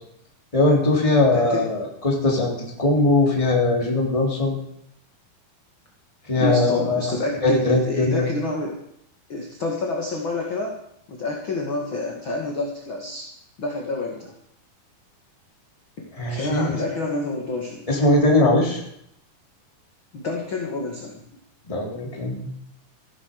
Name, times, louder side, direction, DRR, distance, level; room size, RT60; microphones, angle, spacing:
voice 1, 0.5-4.6 6.3-7.1 7.4-8.3 16.2-16.8 17.9-18.8 21.6-22.5, left 2 dB, 10° left, 0 dB, 2.9 m, -20 dB
voice 2, 1.3-1.7 6.4-8.8 9.3-10.8 11.1-13.2 13.6-14.3 16.3-17.8 20.1-21.2, left 2 dB, 40° left, 0 dB, 2.3 m, -28 dB
15.5 x 9.8 x 6.7 m, 0.72 s
omnidirectional pair, 4.3 m